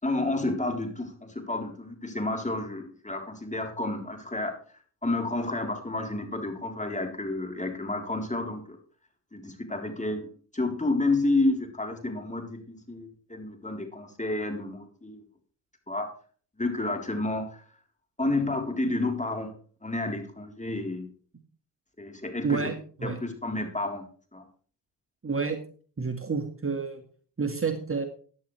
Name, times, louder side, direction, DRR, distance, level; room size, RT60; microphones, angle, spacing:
voice 1, 0.0-4.5 5.0-8.8 9.3-10.2 10.5-15.2 15.9-16.1 16.6-17.6 18.2-19.5 19.8-21.1 22.0-22.7 23.0-24.0 24.3-24.5, left 2 dB, 15° left, 4 dB, 3.9 m, -30 dB
voice 2, 22.4-22.7 23.0-23.2 25.2-25.6 26.0-27.0 27.4-28.1, right 4 dB, 30° right, 6 dB, 1.9 m, -29 dB
14.5 x 10.5 x 3.4 m, 0.43 s
supercardioid pair, 50°, 43 cm